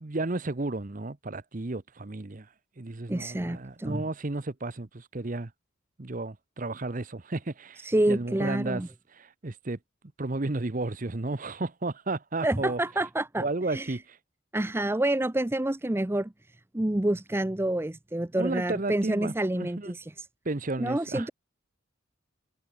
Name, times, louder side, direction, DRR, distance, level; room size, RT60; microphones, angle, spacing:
voice 1, 0.0-2.5 2.8-5.5 6.0-8.8 9.2-9.8 10.2-12.8 13.4-14.2 18.3-19.9 20.4-21.3, right 2 dB, 40° right, 0.8 m, -33 dB
voice 2, 3.1-4.1 7.8-8.9 12.4-14.0 14.5-16.3 16.7-20.3 20.8-21.3, right 1 dB, 10° right, 0.5 m, -28 dB
head